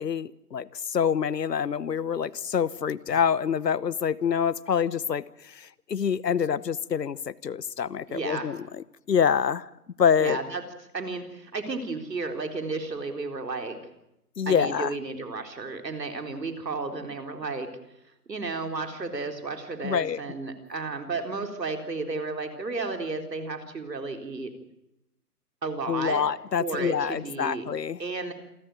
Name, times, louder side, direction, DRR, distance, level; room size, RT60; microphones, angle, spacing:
voice 1, 0.0-9.7 10.0-10.4 14.4-14.9 19.8-20.2 25.9-28.0, left 7 dB, 85° left, 20 dB, 1.1 m, -26 dB
voice 2, 8.1-8.5 10.2-10.6 10.9-13.8 14.5-17.8 18.3-24.5 25.6-26.2 26.6-27.7 28.0-28.3, right 3 dB, 90° right, 6 dB, 4.1 m, -33 dB
28.0 x 13.0 x 9.2 m, 0.86 s
hypercardioid pair, 180°, 48 cm